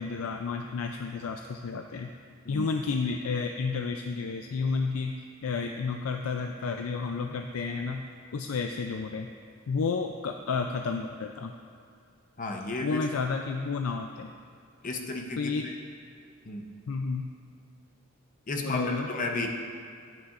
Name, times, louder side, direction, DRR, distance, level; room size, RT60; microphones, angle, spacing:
voice 1, 0.0-2.1 2.5-8.0 8.3-9.3 9.7-11.5 12.8-14.3 15.4-15.7 16.9-17.3 18.5-19.1, left 4 dB, 85° left, 4 dB, 0.4 m, -31 dB
voice 2, 12.4-13.0 14.8-15.7 16.4-16.7 18.5-19.5, left 2 dB, 40° left, 2 dB, 0.7 m, -33 dB
11.0 x 9.1 x 2.5 m, 2.3 s
head